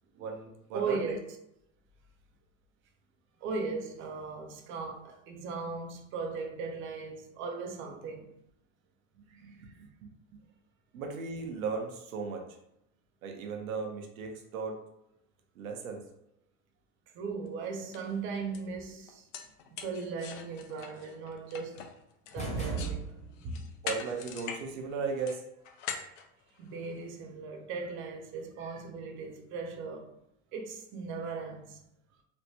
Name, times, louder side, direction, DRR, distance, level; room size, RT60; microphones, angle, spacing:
voice 1, 0.2-1.2 9.3-10.1 10.9-12.5 13.2-14.8 15.6-16.0 23.8-25.4 28.6-28.7, right 5 dB, 75° right, 0.8 m, -37 dB
voice 2, 0.7-1.2 3.4-8.3 17.1-19.3 19.7-21.9 22.3-23.1 23.4-23.7 26.6-30.1 30.5-31.9, right 4 dB, 30° right, 0.5 m, -38 dB
sound 1, 17.5-17.6 17.9-18.1 18.5-18.6 19.1-23.0 23.4-24.6 24.9-27.0, left 7 dB, 60° left, 0.6 m, -42 dB
sound 2, 22.4-23.6, right 4 dB, 15° left, 0.6 m, -36 dB
3.2 x 2.1 x 2.7 m
hypercardioid pair, 110°, 42 cm